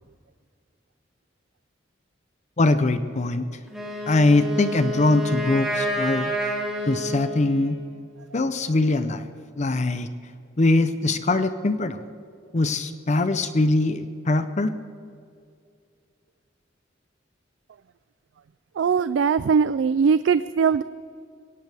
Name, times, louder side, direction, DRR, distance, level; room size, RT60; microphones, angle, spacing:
voice 1, 2.6-3.5 4.1-6.3 6.9-7.8 8.3-9.3 9.6-10.1 10.6-12.0 12.5-14.7, left 2 dB, 40° left, 11 dB, 0.6 m, -22 dB
Wind instrument woodwind instrument, 3.7-7.8, equal, ahead, 2.8 m, -29 dB
voice 2, 18.8-20.8, right 6 dB, 75° right, 14 dB, 0.3 m, -20 dB
22.0 x 17.5 x 3.5 m, 2.3 s
head